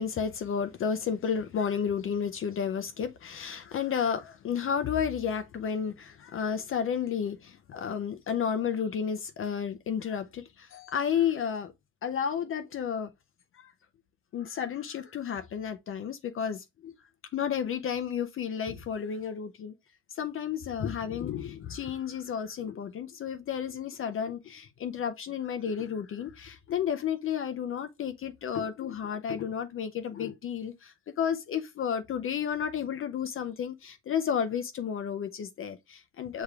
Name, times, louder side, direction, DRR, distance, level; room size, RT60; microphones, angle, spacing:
voice 1, 0.0-11.7 12.0-13.1 13.5-13.7 14.3-16.9 17.3-19.7 20.1-36.4, left 7 dB, 40° left, 0.5 m, -32 dB
6.6 x 3.1 x 2.3 m
cardioid pair, 125°, 32 cm